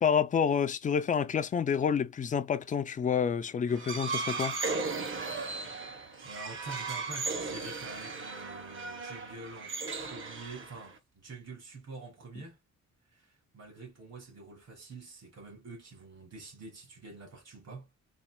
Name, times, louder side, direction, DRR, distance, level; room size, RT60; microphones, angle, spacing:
voice 1, 0.0-4.6, left 7 dB, 25° left, 0.4 m, -28 dB
sound 1, 3.7-11.0, right 4 dB, 45° right, 0.9 m, -36 dB
voice 2, 6.2-12.6 13.1-18.0, right 3 dB, 60° right, 2.1 m, -47 dB
4.2 x 2.5 x 2.2 m
cardioid pair, 120°, 30 cm